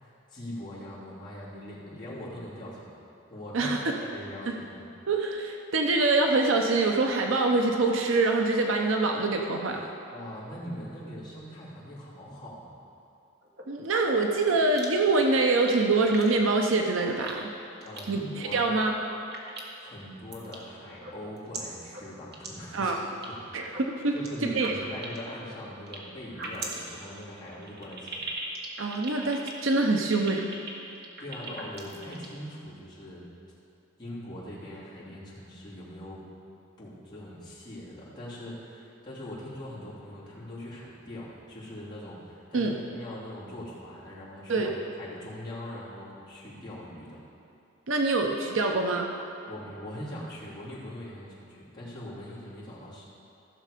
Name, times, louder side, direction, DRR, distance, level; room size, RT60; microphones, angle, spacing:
voice 1, 0.0-2.9 3.3-4.8 10.0-12.8 17.8-18.8 19.8-22.9 23.3-23.4 24.1-28.2 30.8-33.2 34.0-36.2 36.8-44.7 45.0-47.2 49.5-53.1, left 1 dB, 25° left, -9 dB, 2.9 m, -41 dB
voice 2, 5.1-9.9 13.7-17.5 18.1-18.9 22.7-23.0 23.5-24.1 24.4-24.7 28.8-30.4 42.5-42.7 44.5-44.7 47.9-49.1, right 3 dB, 75° right, 2 dB, 0.7 m, -25 dB
sound 1, 13.4-14.2 14.8-15.1 15.5-15.8 16.1-16.3 16.7-16.8 17.3-17.4 17.8-18.1 18.7-19.0 19.3-19.9 20.3-20.6 20.9-21.6 21.9-22.0 22.3-22.5 22.7-23.3 23.6-24.3 24.6-26.0 26.3-32.3, right 4 dB, 55° right, 1.4 m, -39 dB
15.0 x 6.6 x 5.0 m, 2.6 s
head